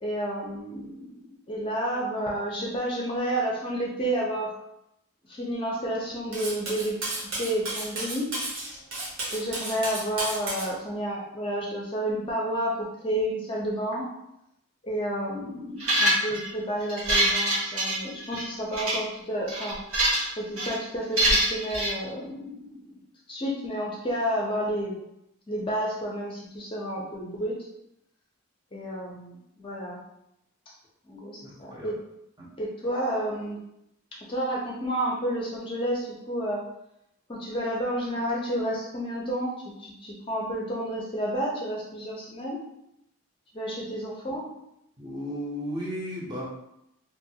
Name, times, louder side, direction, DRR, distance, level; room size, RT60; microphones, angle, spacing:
voice 1, 0.0-4.6 5.3-6.9 7.4-8.3 9.3-14.0 14.8-19.8 20.4-22.8 23.3-24.9 25.5-27.5 28.7-30.0 31.1-31.9 32.6-33.6 34.3-36.6 37.3-39.5 39.8-42.6 43.5-44.4, right 1 dB, 25° left, -4 dB, 0.5 m, -30 dB
Cutlery silverware, 6.3-10.7, right 2 dB, 70° right, 0.9 m, -33 dB
sound 1, 15.8-16.5 16.9-18.4 18.7-19.0 19.5-20.3 20.6-20.8 21.2-21.9, right 1 dB, 90° right, 1.4 m, -24 dB
voice 2, 31.4-31.9 32.4-32.5 43.8-43.9 45.0-46.4, equal, 20° right, -5 dB, 0.6 m, -35 dB
2.9 x 2.3 x 2.7 m, 0.81 s
head